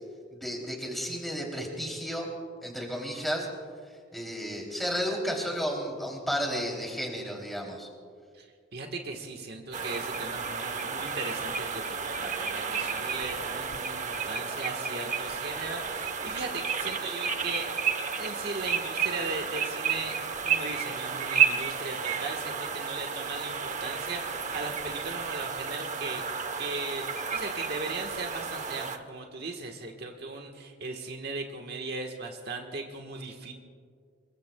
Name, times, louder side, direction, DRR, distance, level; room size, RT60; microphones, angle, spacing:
voice 1, 0.3-2.3 2.6-3.5 4.1-7.9, equal, ahead, 0 dB, 2.9 m, -32 dB
voice 2, 8.7-17.7 18.1-20.2 20.4-26.2 26.6-33.5, right 3 dB, 55° right, 3 dB, 1.3 m, -37 dB
sound 1, 9.7-29.0, right 6 dB, 40° right, 0.9 m, -32 dB
25.5 x 22.5 x 2.2 m, 2.1 s
head